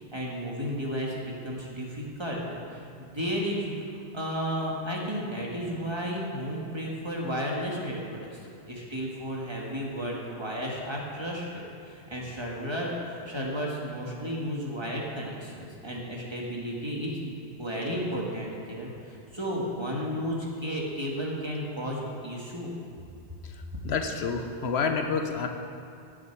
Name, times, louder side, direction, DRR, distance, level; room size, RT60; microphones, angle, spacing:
voice 1, 0.1-8.4 8.7-22.7, equal, 25° right, -3 dB, 1.5 m, -33 dB
voice 2, 23.4-25.5, left 5 dB, 85° left, 5 dB, 1.1 m, -29 dB
16.5 x 6.4 x 4.6 m, 2.5 s
omnidirectional pair, 1.1 m